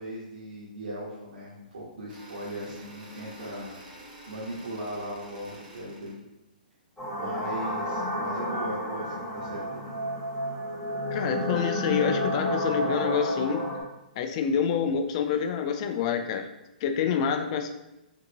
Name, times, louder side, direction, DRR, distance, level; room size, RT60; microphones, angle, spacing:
voice 1, 0.0-3.7 4.3-6.2 7.1-9.9, right 1 dB, 80° right, -8 dB, 1.1 m, -38 dB
sound 1, 2.1-6.2, right 1 dB, 55° right, 1.0 m, -48 dB
sound 2, 7.0-13.8, left 1 dB, 5° left, 1.2 m, -30 dB
voice 2, 11.1-13.7 14.2-16.5 16.8-17.7, left 7 dB, 40° left, 6 dB, 0.4 m, -27 dB
3.5 x 2.5 x 2.9 m, 0.93 s
hypercardioid pair, 140°, 5 cm